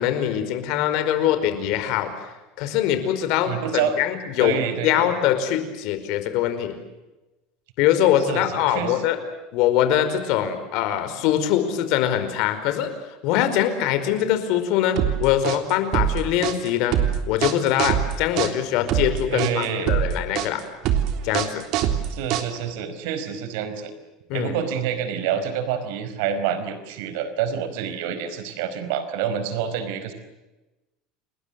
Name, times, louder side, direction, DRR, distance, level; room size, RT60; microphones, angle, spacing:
voice 1, 0.0-2.2 2.6-6.8 7.8-9.2 9.5-12.9 13.2-17.0 17.3-20.6 21.2-21.6 24.3-24.5, left 11 dB, 60° left, 9 dB, 5.0 m, -23 dB
voice 2, 3.4-3.9 4.4-5.1 8.3-9.0 19.3-19.9 22.1-23.9 24.3-30.1, right 8 dB, 75° right, 11 dB, 4.8 m, -27 dB
sound 1, 15.0-22.8, right 10 dB, 50° right, 3.4 m, -24 dB
30.0 x 21.0 x 7.8 m, 1.0 s
cardioid pair, 155°, 0 cm